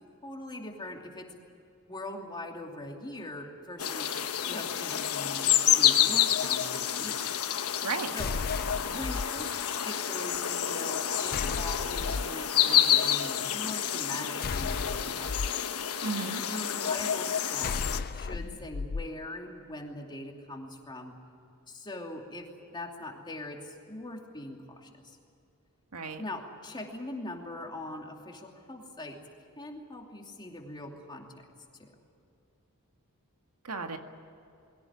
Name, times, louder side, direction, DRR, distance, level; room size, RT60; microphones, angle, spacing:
voice 1, 0.2-1.3 1.9-4.1 4.4-7.2 8.1-8.4 8.9-15.5 16.5-17.8 18.1-21.2 21.7-25.2 26.2-29.2 29.6-31.5 31.8-31.9, left 1 dB, 20° left, 1 dB, 2.8 m, -41 dB
sound 1, 3.8-18.0, left 10 dB, 75° left, 1.2 m, -28 dB
voice 2, 7.8-8.1 16.0-16.4 25.9-26.2 33.6-34.0, right 4 dB, 90° right, 5 dB, 1.9 m, -34 dB
sound 2, 8.2-9.3 11.3-12.3 14.4-15.5 17.6-19.1, left 4 dB, 45° left, 0.4 m, -34 dB
21.5 x 17.0 x 9.7 m, 2.6 s
head